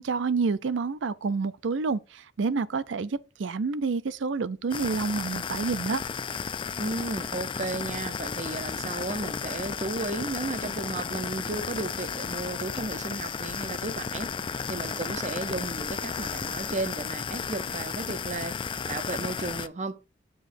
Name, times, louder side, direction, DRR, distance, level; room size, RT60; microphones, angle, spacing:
voice 1, 0.0-6.0, right 4 dB, 80° right, 0.5 m, -28 dB
sound 1, 4.7-19.7, left 6 dB, 25° left, 0.4 m, -33 dB
voice 2, 6.8-14.3 14.7-20.0, right 2 dB, 40° right, 0.7 m, -34 dB
7.9 x 6.9 x 2.6 m
head